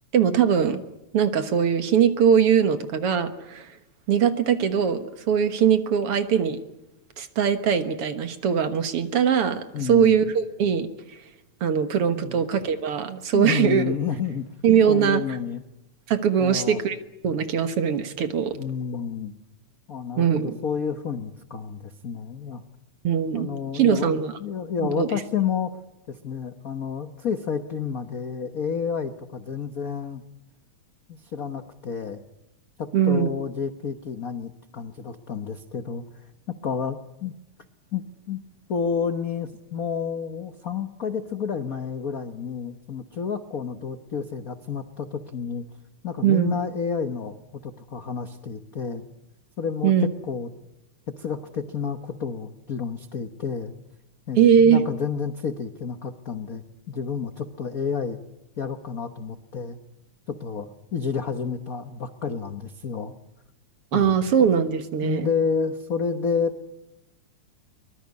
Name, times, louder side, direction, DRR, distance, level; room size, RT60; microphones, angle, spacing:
voice 1, 0.1-0.8 1.1-3.7 4.1-6.6 7.2-10.9 11.6-13.8 14.6-15.2 16.1-17.0 17.2-18.6 20.2-20.6 23.0-24.3 24.8-25.1 32.9-33.3 46.2-46.5 49.8-50.1 54.4-54.8 63.9-65.3, right 8 dB, 55° right, 9 dB, 2.1 m, -21 dB
voice 2, 9.7-10.2 12.1-12.4 13.3-14.4 14.9-15.6 16.4-16.8 18.5-19.3 19.9-22.6 23.3-25.8 26.1-30.2 31.1-32.2 32.8-36.0 36.5-37.3 37.9-38.4 38.7-45.7 46.0-47.4 47.6-49.0 49.6-50.5 51.2-53.8 54.3-58.2 58.6-59.8 60.3-63.1 63.9-64.2 65.0-66.6, left 6 dB, 80° left, 9 dB, 0.7 m, -30 dB
23.5 x 21.0 x 9.6 m, 0.88 s
omnidirectional pair, 3.3 m